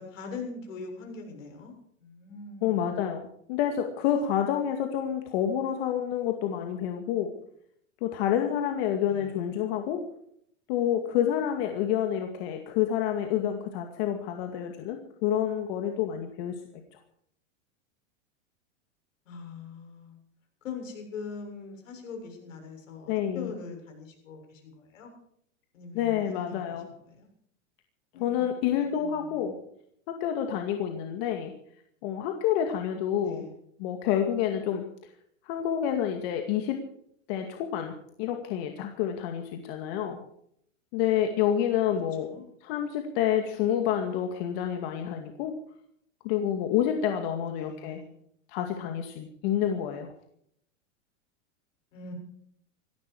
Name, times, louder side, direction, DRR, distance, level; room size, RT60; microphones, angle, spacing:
voice 1, 0.0-1.7 2.0-2.9 9.1-9.3 19.3-20.2 20.6-25.1 25.7-26.6 27.1-27.3 28.1-29.4 33.2-33.5 42.2-42.5 47.4-48.2 51.9-52.1, left 4 dB, 80° left, 3 dB, 7.3 m, -42 dB
voice 2, 2.6-3.2 3.5-7.3 8.0-10.0 10.7-16.5 23.1-23.5 25.9-26.9 28.2-29.5 30.1-31.5 32.0-33.5 33.8-34.8 35.4-36.8 37.3-40.2 40.9-42.3 42.6-45.5 46.2-48.0 48.5-50.1, left 10 dB, 50° left, 4 dB, 2.3 m, -28 dB
18.0 x 15.0 x 4.9 m, 0.69 s
supercardioid pair, 135°, 38 cm